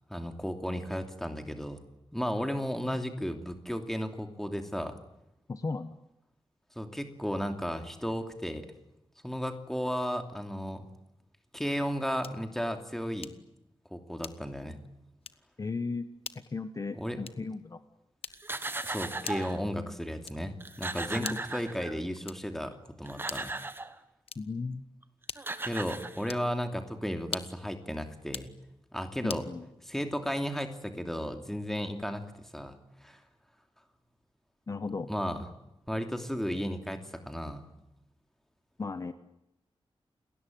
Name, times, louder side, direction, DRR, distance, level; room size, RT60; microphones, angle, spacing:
voice 1, 0.1-1.8 2.1-5.0 6.8-8.7 9.2-10.8 11.5-13.3 13.9-14.8 16.9-17.2 18.8-23.5 25.6-28.5 28.9-29.4 29.9-33.2 35.1-35.5 35.9-37.7, equal, 5° left, 6 dB, 2.9 m, -34 dB
voice 2, 5.5-6.0 15.6-16.1 16.5-17.8 21.1-21.4 24.4-24.8 29.2-29.7 34.7-35.1 38.8-39.1, left 4 dB, 35° left, 10 dB, 1.1 m, -35 dB
sound 1, 12.2-12.5 13.2-13.5 14.2-14.7 15.2-15.5 16.2-16.5 17.2-17.6 18.2-18.6 19.2-19.6 20.2-20.6 21.2-21.6 22.2-22.6 23.2-23.6 24.2-24.6 25.3-25.7 26.2-26.5 27.2-27.7 28.2-28.6 29.3-29.5, left 6 dB, 80° left, 1.3 m, -43 dB
sound 2, 18.3-19.6 20.3-20.4 20.6-22.2 22.8-24.0 25.0-25.1 25.4-26.6, right 2 dB, 25° right, 1.3 m, -37 dB
29.5 x 20.0 x 9.4 m, 0.89 s
wide cardioid pair, 165°, 10 cm